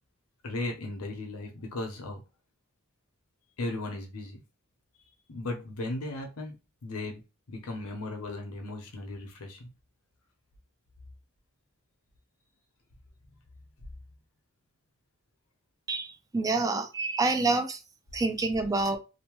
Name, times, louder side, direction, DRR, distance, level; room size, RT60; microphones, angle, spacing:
voice 1, 0.4-2.2 3.6-4.4 5.0-6.6 6.8-7.2 7.5-9.7, left 2 dB, 85° left, 0.8 m, -36 dB
voice 2, 15.9-17.8 18.1-19.0, right 3 dB, 15° right, 0.3 m, -27 dB
2.8 x 2.1 x 3.0 m
head